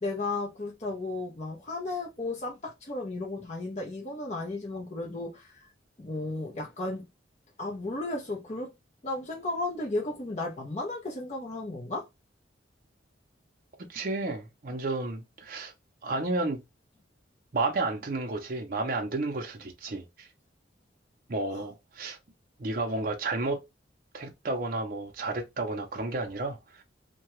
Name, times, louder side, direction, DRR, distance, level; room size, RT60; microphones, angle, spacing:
voice 1, 0.0-5.6 6.0-7.1 7.6-8.7 9.0-12.1 21.5-21.6, left 2 dB, 35° left, 0.6 m, -34 dB
voice 2, 13.9-15.7 16.0-16.6 17.5-20.3 21.3-22.2 22.6-23.7 24.1-26.8, right 2 dB, 45° right, 0.5 m, -32 dB
2.7 x 2.2 x 3.0 m
head